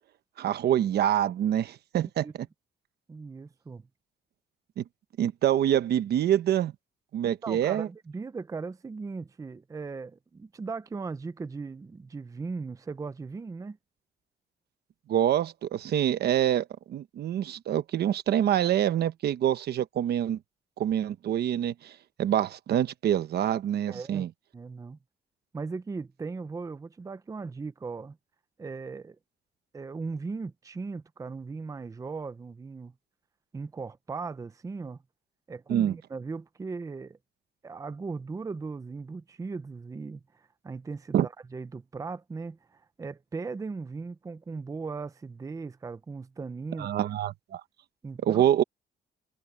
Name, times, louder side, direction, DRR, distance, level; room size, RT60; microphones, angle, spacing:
voice 1, 0.4-2.3 4.8-4.9 5.2-6.7 7.1-7.9 15.1-20.4 20.8-21.9 22.2-24.3 35.7-35.9 41.1-41.3 46.8-47.6 48.2-48.6, right 11 dB, 70° right, 1.0 m, -26 dB
voice 2, 3.1-3.9 7.2-13.8 23.9-24.3 24.5-25.0 25.5-28.2 28.6-29.2 29.7-32.9 33.5-35.0 35.5-37.2 37.6-46.9 48.0-48.5, right 4 dB, 20° right, 0.6 m, -38 dB
cardioid pair, 145°, 17 cm